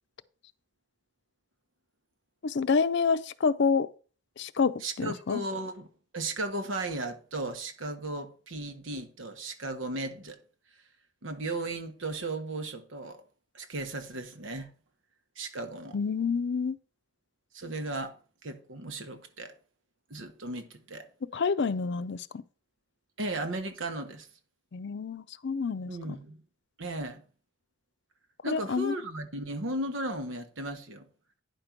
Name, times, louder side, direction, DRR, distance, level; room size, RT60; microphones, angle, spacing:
voice 1, 2.4-3.9 4.4-5.4 15.9-16.8 21.3-22.3 24.7-26.2 28.5-28.9, left 5 dB, 65° left, 0.5 m, -28 dB
voice 2, 4.8-5.9 6.1-10.4 11.2-13.2 13.5-14.7 15.4-16.0 17.5-18.1 18.4-19.5 20.1-21.1 23.2-24.3 25.9-26.4 26.8-27.2 28.4-31.0, right 2 dB, 90° right, 1.2 m, -35 dB
9.8 x 5.1 x 5.9 m
head